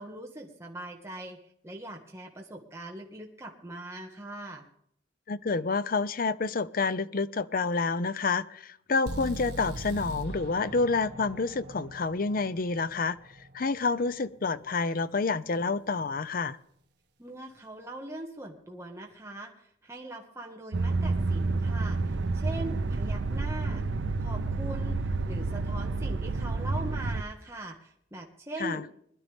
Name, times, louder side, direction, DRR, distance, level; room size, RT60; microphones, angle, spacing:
voice 1, 0.0-1.4 1.6-4.6 17.2-23.8 24.2-25.0 25.3-28.9, right 1 dB, 15° right, 1.6 m, -41 dB
voice 2, 5.3-13.2 13.5-16.6 28.6-28.8, left 4 dB, 50° left, 0.6 m, -28 dB
sound 1, 9.1-13.0, right 1 dB, 65° right, 1.7 m, -39 dB
sound 2, 20.7-27.2, right 3 dB, 80° right, 0.7 m, -29 dB
21.5 x 12.0 x 3.5 m
head